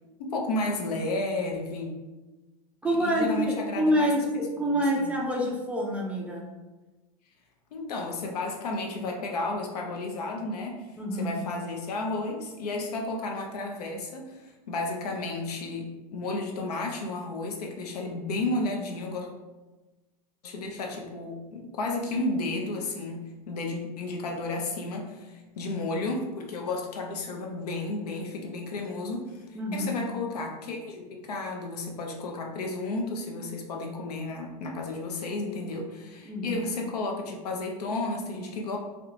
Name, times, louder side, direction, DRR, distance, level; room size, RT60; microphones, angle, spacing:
voice 1, 0.2-1.9 2.9-4.1 4.6-5.1 7.7-10.8 11.1-19.3 20.4-29.4 29.7-38.8, left 2 dB, 85° left, 1 dB, 0.6 m, -32 dB
voice 2, 2.8-6.4 11.0-11.4 29.6-30.0 36.3-36.6, equal, 5° right, -2 dB, 0.3 m, -27 dB
2.8 x 2.1 x 2.4 m, 1.2 s
hypercardioid pair, 115°, 20 cm